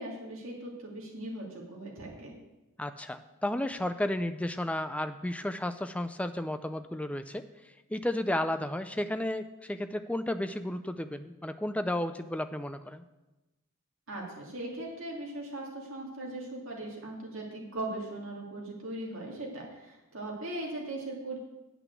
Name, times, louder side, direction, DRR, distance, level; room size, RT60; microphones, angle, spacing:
voice 1, 0.0-2.3 14.1-21.4, right 1 dB, 65° right, -2 dB, 2.7 m, -39 dB
voice 2, 2.8-7.4 7.9-13.0, left 1 dB, 5° left, 9 dB, 0.4 m, -33 dB
8.9 x 6.0 x 8.1 m, 1.0 s
head